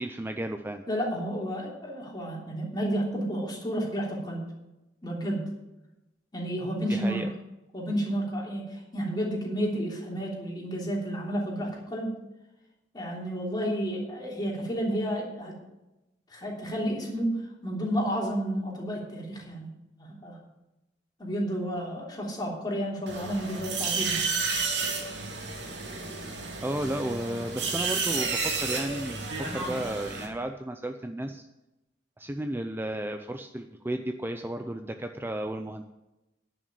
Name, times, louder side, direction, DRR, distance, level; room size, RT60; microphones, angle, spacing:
voice 1, 0.0-0.8 6.9-7.3 26.6-31.5 32.2-35.8, right 1 dB, 10° right, 6 dB, 0.5 m, -33 dB
voice 2, 0.9-4.4 5.0-5.4 6.3-7.2 7.7-12.1 12.9-15.5 16.3-17.3 17.6-19.7 20.0-20.4 21.2-24.2, equal, 25° left, -3 dB, 3.3 m, -31 dB
sound 1, 23.1-30.3, right 4 dB, 70° right, 2.5 m, -31 dB
10.5 x 6.2 x 8.6 m, 0.98 s
head